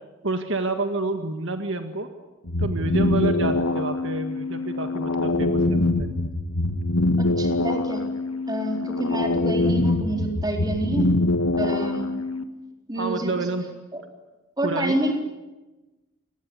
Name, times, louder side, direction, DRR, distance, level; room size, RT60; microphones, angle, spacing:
voice 1, 0.2-2.1 2.6-6.1 13.0-13.6 14.6-15.0, right 2 dB, 60° right, 7 dB, 1.8 m, -28 dB
sound 1, 2.5-12.4, left 2 dB, 90° left, 1.8 m, -24 dB
voice 2, 7.2-8.0 8.5-11.1 11.6-12.1 12.9-13.5 13.9-14.0 14.6-15.2, right 1 dB, 20° right, 3 dB, 4.1 m, -28 dB
28.0 x 20.0 x 9.7 m, 1.1 s
head